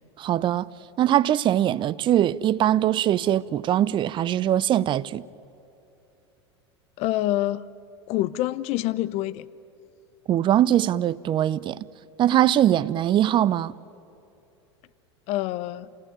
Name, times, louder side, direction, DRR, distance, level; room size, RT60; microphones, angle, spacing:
voice 1, 0.2-0.7 1.0-5.2 10.3-11.8 12.2-13.7, right 12 dB, 35° right, 0.7 m, -22 dB
voice 2, 7.0-7.6 8.1-9.5 15.3-15.9, left 15 dB, 50° left, 0.8 m, -26 dB
29.0 x 18.0 x 9.9 m
hypercardioid pair, 85°, 14 cm